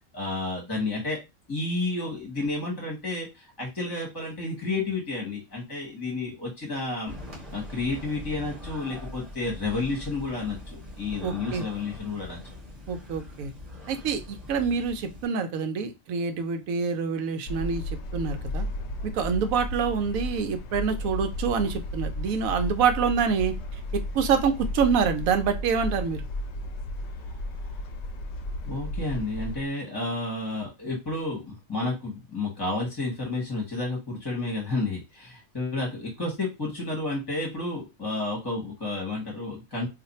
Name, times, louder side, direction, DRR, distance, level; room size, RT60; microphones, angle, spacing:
voice 1, 0.1-1.2 1.5-7.1 7.5-12.4 27.2-27.3 27.6-27.7 28.7-39.9, left 2 dB, 20° left, -3 dB, 1.0 m, -31 dB
sound 1, 7.0-15.3, left 1 dB, 30° right, 1.0 m, -42 dB
voice 2, 11.2-11.6 12.9-13.5 13.9-17.8 18.1-18.7 19.0-23.5 23.9-26.3, right 6 dB, 80° right, 8 dB, 1.0 m, -26 dB
sound 2, 17.5-29.7, left 1 dB, 65° left, 0.7 m, -34 dB
2.6 x 2.5 x 4.0 m, 0.25 s
omnidirectional pair, 1.4 m